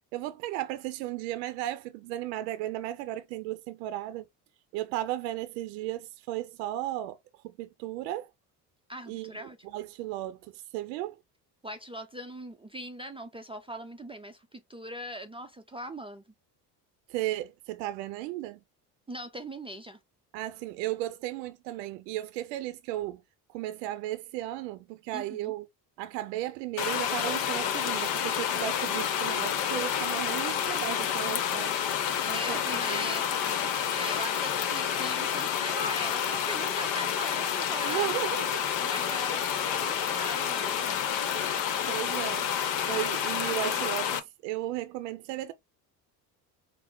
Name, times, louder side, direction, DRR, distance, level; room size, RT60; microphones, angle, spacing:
voice 1, 0.1-4.3 4.7-7.2 7.4-8.3 9.1-11.2 17.1-18.6 20.3-23.2 23.5-25.7 26.0-31.7 32.2-33.2 37.8-38.6 41.9-42.5 42.8-45.5, right 14 dB, 80° right, 0.6 m, -35 dB
voice 2, 8.9-9.6 11.6-16.2 19.1-20.0 25.1-25.5 32.3-38.1 38.8-41.0, equal, 10° right, 0.4 m, -40 dB
sound 1, 26.8-44.2, left 8 dB, 60° left, 0.9 m, -29 dB
4.4 x 2.0 x 3.7 m
hypercardioid pair, 65°, 49 cm